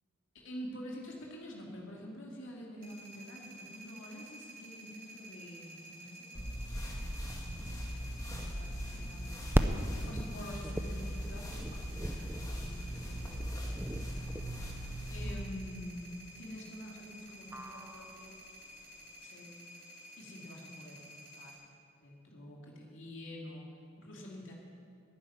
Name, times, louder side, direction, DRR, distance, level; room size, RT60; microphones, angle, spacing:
voice 1, 0.3-6.4 8.4-9.4 9.9-14.3 15.1-16.1 16.4-18.3 18.6-19.5 20.2-21.6 21.9-24.5, equal, 60° left, -2 dB, 2.6 m, -48 dB
sound 1, 2.8-21.5, right 1 dB, 45° right, 4.4 m, -52 dB
sound 2, 6.3-15.4, equal, 15° left, 1.9 m, -40 dB
sound 3, 8.0-19.1, right 1 dB, 10° right, 0.5 m, -38 dB
12.0 x 10.0 x 9.7 m, 2.4 s
head